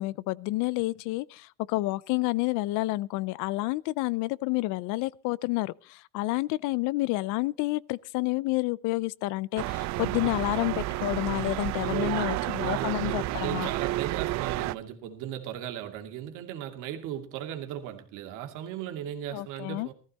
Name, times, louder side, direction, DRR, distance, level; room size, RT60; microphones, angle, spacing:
voice 1, 0.0-13.7 19.3-19.9, left 20 dB, 85° left, 0.6 m, -29 dB
sound 1, 9.6-14.7, right 17 dB, 65° right, 0.6 m, -31 dB
voice 2, 11.8-19.9, right 10 dB, 85° right, 2.4 m, -37 dB
16.0 x 14.5 x 4.2 m
cardioid pair, 135°, 30 cm